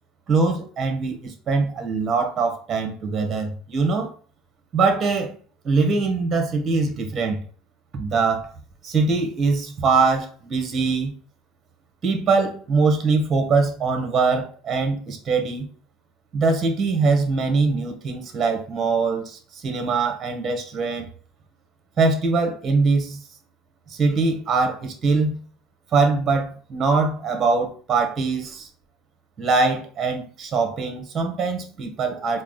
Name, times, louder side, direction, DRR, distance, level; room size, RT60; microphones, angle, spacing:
voice 1, 0.3-4.1 4.7-5.4 5.6-7.4 7.9-8.5 8.8-11.1 12.0-15.6 16.3-21.1 22.0-23.2 23.9-25.4 25.9-28.7 29.4-32.4, right 4 dB, 35° right, 5 dB, 1.1 m, -22 dB
4.5 x 2.1 x 3.8 m, 0.42 s
supercardioid pair, 90°, 0 cm